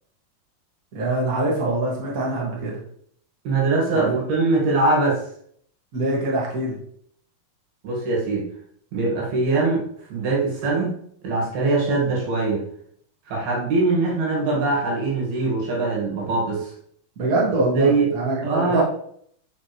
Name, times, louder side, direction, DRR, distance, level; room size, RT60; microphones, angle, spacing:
voice 1, 0.9-2.8 3.9-4.2 5.9-6.7 17.1-18.8, right 2 dB, 35° right, -4 dB, 1.6 m, -24 dB
voice 2, 3.5-5.2 7.8-8.4 8.9-9.8 10.1-11.0 11.2-12.6 13.3-16.7 17.7-18.1 18.4-18.8, right 3 dB, 75° right, -3 dB, 3.8 m, -22 dB
10.0 x 5.2 x 3.2 m, 0.64 s
omnidirectional pair, 4.5 m